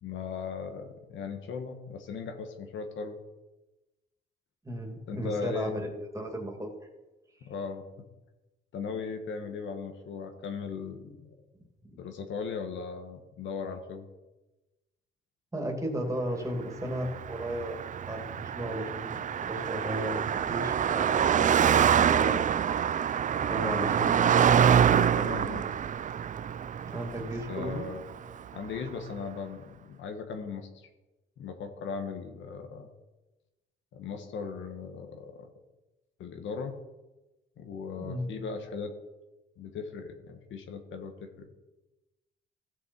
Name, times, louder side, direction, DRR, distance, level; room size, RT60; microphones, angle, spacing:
voice 1, 0.0-3.2 5.1-5.8 7.4-7.9 8.7-11.3 12.0-14.1 23.6-24.1 24.9-25.6 27.5-28.0 28.5-30.7 31.4-32.9 33.9-35.5 36.2-36.7 37.6-39.0 39.6-41.5, left 5 dB, 75° left, 5 dB, 1.4 m, -38 dB
voice 2, 4.6-6.7 15.5-22.5 23.4-24.3 26.8-27.8 38.0-38.3, right 1 dB, 15° right, 2 dB, 2.6 m, -35 dB
Car passing by, 17.0-28.5, right 8 dB, 40° right, 0.4 m, -26 dB
15.5 x 6.3 x 4.6 m, 1.1 s
cardioid pair, 90°, 20 cm